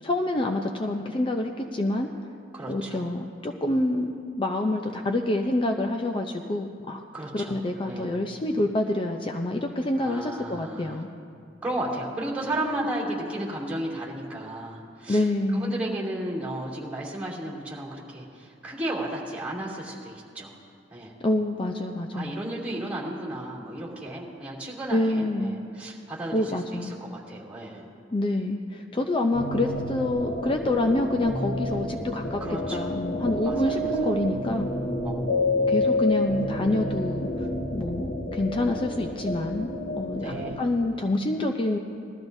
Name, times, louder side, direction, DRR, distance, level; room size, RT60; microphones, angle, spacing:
voice 1, 0.0-2.1 2.7-7.0 7.3-11.1 15.1-15.8 21.2-22.4 24.9-25.5 26.3-27.0 28.1-32.4 32.7-34.7 35.7-37.3 37.7-39.7 40.0-41.8, left 1 dB, 30° left, 4 dB, 0.5 m, -27 dB
voice 2, 2.5-3.0 7.1-7.6 7.9-8.1 10.0-11.0 11.6-15.2 15.6-20.5 20.9-21.1 22.1-27.9 32.4-32.9 33.4-33.9 35.0-36.0 40.1-40.6, right 1 dB, 5° right, -6 dB, 2.7 m, -34 dB
sound 1, 29.3-40.6, left 1 dB, 85° left, 1.6 m, -29 dB
20.0 x 13.5 x 2.7 m, 2.4 s
head